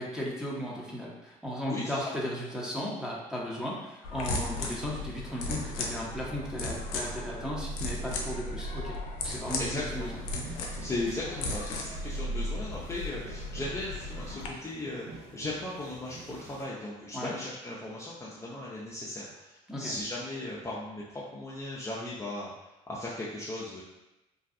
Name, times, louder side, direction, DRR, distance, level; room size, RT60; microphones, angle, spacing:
voice 1, 0.0-9.0 9.2-10.2 17.1-17.3 19.7-19.9, equal, 5° right, -4 dB, 0.8 m, -36 dB
voice 2, 1.7-2.0 9.6-10.1 10.8-22.5 22.9-23.8, left 2 dB, 15° left, -7 dB, 0.5 m, -37 dB
sound 1, 4.0-14.5, left 2 dB, 80° left, 0.4 m, -36 dB
sound 2, 9.2-16.7, right 3 dB, 65° right, 0.5 m, -49 dB
2.6 x 2.2 x 2.5 m, 0.96 s
hypercardioid pair, 60°, 17 cm